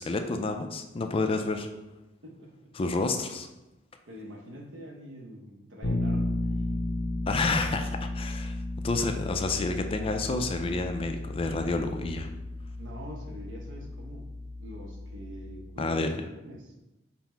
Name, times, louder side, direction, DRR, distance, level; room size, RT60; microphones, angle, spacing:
voice 1, 0.0-1.7 2.8-3.5 7.3-8.5 8.8-12.3 15.8-16.2, left 3 dB, 30° left, 6 dB, 0.3 m, -29 dB
voice 2, 2.2-2.7 4.1-7.1 12.8-14.3 14.6-16.8, right 1 dB, 70° right, -1 dB, 0.9 m, -45 dB
Bass guitar, 5.8-15.6, left 2 dB, 85° left, 0.7 m, -34 dB
5.7 x 2.1 x 4.4 m, 0.98 s
head